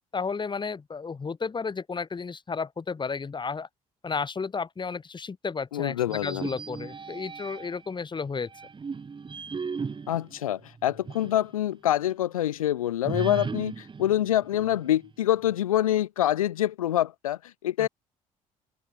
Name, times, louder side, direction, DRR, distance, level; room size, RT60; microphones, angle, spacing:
voice 1, 0.1-3.7 4.0-8.5 17.8-17.9, left 5 dB, 25° left, 1.5 m, -33 dB
voice 2, 5.7-6.5 10.1-17.9, left 12 dB, 80° left, 0.8 m, -26 dB
sound 1, 6.0-7.9 8.5-11.5 11.8-11.9 13.0-15.1, right 5 dB, 25° right, 1.4 m, -37 dB
open air
figure-of-eight pair, 50°, 18 cm